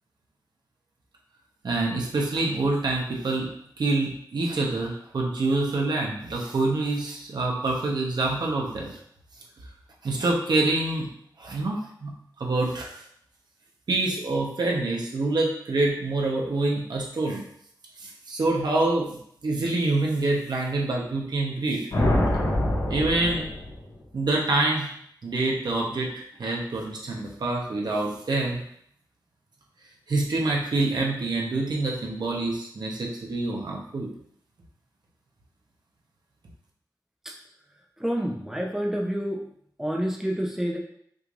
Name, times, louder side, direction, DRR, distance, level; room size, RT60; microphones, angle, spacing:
voice 1, 1.6-3.5 3.8-8.9 10.0-11.1 11.4-12.1 12.4-12.9 13.9-17.4 18.0-19.2 19.4-21.9 22.9-23.4 24.1-24.9 25.2-28.6 30.1-34.1, right 2 dB, 70° right, -1 dB, 1.0 m, -26 dB
sound 1, 21.9-24.0, left 1 dB, 90° left, 1.8 m, -25 dB
voice 2, 38.0-39.4 39.8-40.8, equal, 5° right, 0 dB, 0.7 m, -28 dB
5.8 x 3.3 x 2.6 m, 0.66 s
wide cardioid pair, 90°, 7 cm